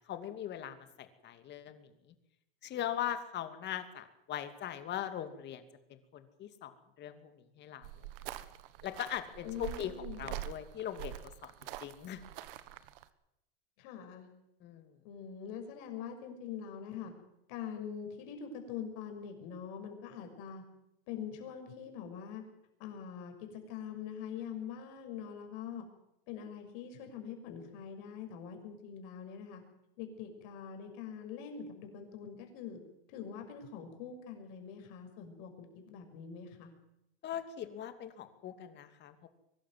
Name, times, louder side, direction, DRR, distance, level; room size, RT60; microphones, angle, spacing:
voice 1, 0.0-2.1 2.6-5.6 5.9-7.9 8.8-9.9 10.2-12.2 14.6-15.0 37.2-39.3, left 10 dB, 35° left, 9 dB, 2.6 m, -41 dB
sound 1, 7.8-13.0, right 14 dB, 65° right, 1.5 m, -45 dB
voice 2, 9.4-10.4 13.8-14.3 15.0-17.1 17.5-20.6 21.1-22.4 22.8-25.8 26.3-29.6 30.0-32.8 33.1-36.7, left 7 dB, 60° left, 5 dB, 6.2 m, -44 dB
23.0 x 12.5 x 9.3 m, 0.85 s
supercardioid pair, 125°, 30 cm